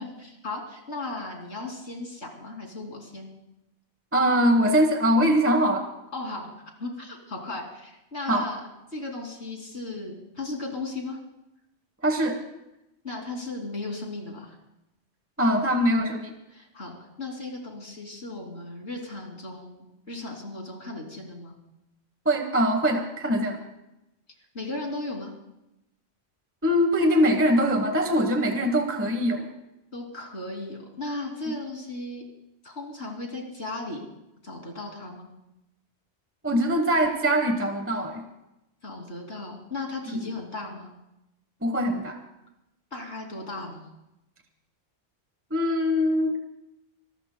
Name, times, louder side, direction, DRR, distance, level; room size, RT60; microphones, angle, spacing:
voice 1, 0.0-3.3 6.1-6.5 6.8-8.6 8.9-11.2 13.0-14.6 16.5-21.5 24.5-25.3 29.9-32.2 32.6-34.0 34.4-35.3 38.8-40.9 42.9-43.9, left 2 dB, 65° left, 1 dB, 3.1 m, -36 dB
voice 2, 4.1-5.8 8.3-8.5 12.0-12.4 15.4-16.3 22.2-23.6 26.6-29.5 36.4-38.3 41.6-42.2 45.5-46.4, equal, 10° right, 5 dB, 1.1 m, -22 dB
25.5 x 19.0 x 2.2 m, 0.90 s
omnidirectional pair, 1.2 m